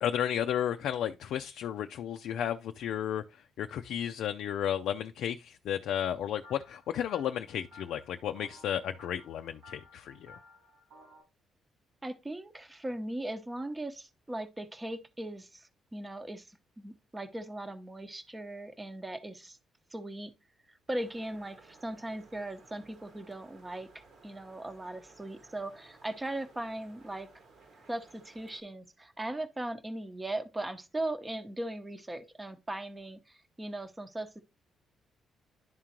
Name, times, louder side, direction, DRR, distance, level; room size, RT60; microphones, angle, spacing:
voice 1, 0.0-10.3, left 10 dB, 75° left, 0.4 m, -33 dB
sound 1, 6.4-11.2, left 2 dB, 90° right, 4.3 m, -56 dB
voice 2, 12.0-19.6 19.9-20.3 20.9-27.3 27.9-34.4, right 1 dB, 15° right, 0.9 m, -39 dB
sound 2, 21.0-28.6, right 4 dB, 65° right, 1.6 m, -58 dB
11.0 x 3.7 x 2.9 m
cardioid pair, 90°, 0 cm